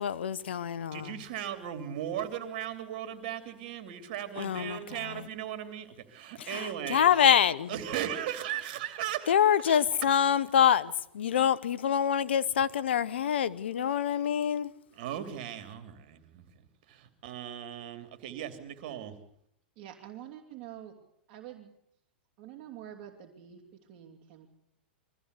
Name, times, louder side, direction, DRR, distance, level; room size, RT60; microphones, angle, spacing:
voice 1, 0.0-1.1 4.4-5.2 6.4-7.7 9.3-14.7, left 8 dB, 80° left, 0.9 m, -26 dB
voice 2, 0.9-7.3 7.7-9.3 9.6-9.8 14.9-19.1, right 10 dB, 55° right, 3.0 m, -37 dB
voice 3, 19.8-21.0 21.3-21.7 22.4-24.5, right 11 dB, 40° right, 3.0 m, -47 dB
23.0 x 15.0 x 8.2 m
hypercardioid pair, 115°, 6 cm